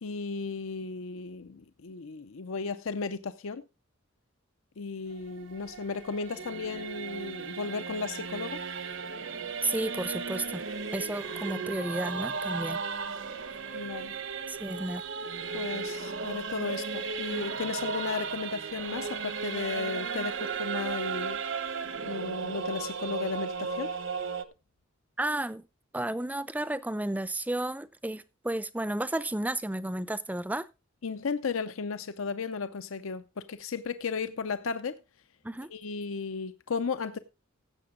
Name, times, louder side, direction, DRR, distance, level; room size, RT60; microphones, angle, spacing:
voice 1, 0.0-3.6 4.8-8.6 13.7-14.1 15.5-21.4 22.0-23.9 31.0-35.0 35.7-37.2, left 4 dB, 80° left, 0.6 m, -35 dB
Singing / Musical instrument, 5.1-24.4, right 5 dB, 65° right, 1.0 m, -35 dB
voice 2, 9.6-10.7 10.9-12.8 13.7-13.8 14.5-15.1 25.2-25.6 25.9-30.6 35.4-35.7, right 1 dB, 10° right, 0.5 m, -32 dB
15.5 x 7.7 x 3.7 m
head